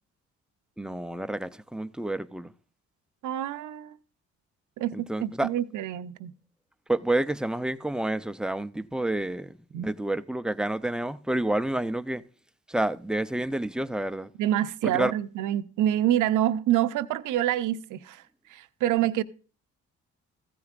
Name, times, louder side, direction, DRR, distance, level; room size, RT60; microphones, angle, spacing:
voice 1, 0.8-2.5 4.9-5.5 6.9-12.2 12.7-14.3 14.8-15.1, right 1 dB, 5° right, 0.5 m, -29 dB
voice 2, 3.2-4.0 4.8-6.3 9.7-9.9 14.4-18.2 18.5-19.2, right 12 dB, 80° right, 0.7 m, -27 dB
15.5 x 13.0 x 2.5 m
cardioid pair, 90°, 30 cm